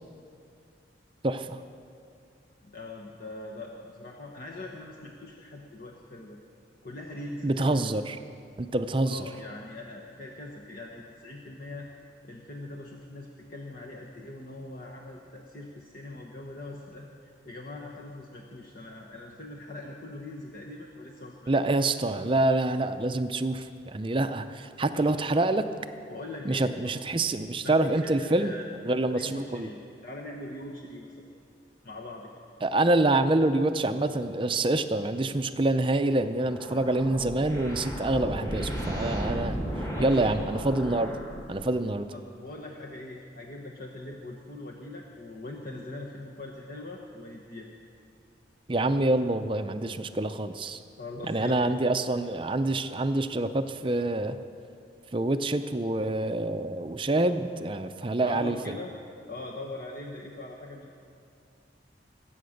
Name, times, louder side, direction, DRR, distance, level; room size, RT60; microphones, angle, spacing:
voice 1, 1.2-1.6 7.4-8.2 8.6-9.2 21.5-25.7 26.4-28.5 28.8-29.7 32.6-39.6 40.0-41.1 41.5-42.1 48.7-50.8 51.3-54.4 55.1-58.8, right 2 dB, 30° right, 9 dB, 0.5 m, -26 dB
voice 2, 2.6-6.4 6.8-7.8 9.0-11.9 12.2-21.5 25.0-25.1 26.1-26.9 27.6-28.7 29.1-31.3 31.8-32.3 40.0-40.4 42.1-47.7 51.0-51.9 58.2-58.9 59.3-60.9, left 2 dB, 50° left, -1 dB, 1.2 m, -42 dB
sound 1, 36.4-41.9, equal, 15° left, 1.9 m, -34 dB
22.5 x 8.7 x 6.5 m, 2.4 s
head